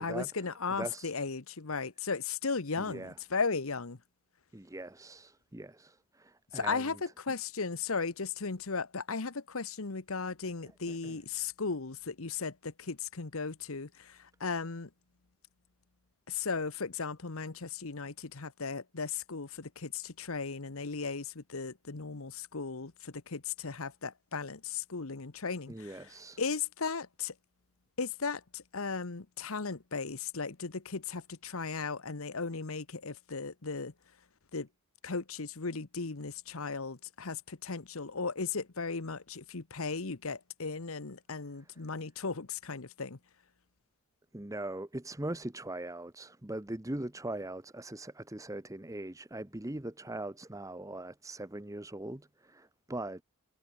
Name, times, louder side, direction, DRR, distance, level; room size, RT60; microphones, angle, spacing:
voice 1, 0.0-4.0 6.5-14.9 16.3-26.1 26.4-27.3 28.0-33.9 34.5-34.7 35.0-43.2, left 4 dB, 70° left, 1.1 m, -36 dB
voice 2, 0.7-1.1 2.8-3.1 4.5-7.0 10.9-11.2 25.7-26.4 44.3-53.2, right 1 dB, 15° right, 1.0 m, -41 dB
head